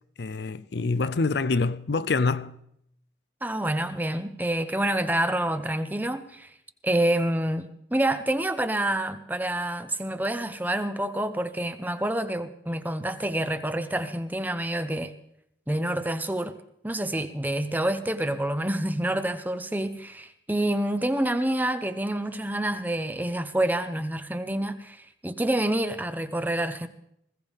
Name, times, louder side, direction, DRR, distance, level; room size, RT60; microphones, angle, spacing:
voice 1, 0.2-2.6, left 3 dB, 65° left, 0.5 m, -26 dB
voice 2, 3.4-6.5 6.8-15.1 15.7-16.6 16.8-26.9, right 1 dB, 10° right, 0.7 m, -27 dB
20.0 x 16.5 x 3.6 m
head